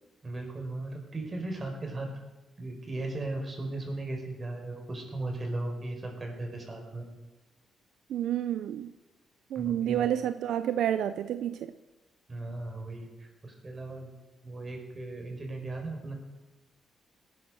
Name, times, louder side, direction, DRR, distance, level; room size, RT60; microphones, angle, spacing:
voice 1, 0.2-2.2 2.6-7.1 9.5-10.1 12.3-14.1 14.4-16.1, right 2 dB, 30° right, 2 dB, 4.8 m, -37 dB
voice 2, 8.1-8.9 9.5-11.7, right 10 dB, 80° right, 11 dB, 0.5 m, -29 dB
18.0 x 10.0 x 6.6 m, 1.1 s
cardioid pair, 75°, 0 cm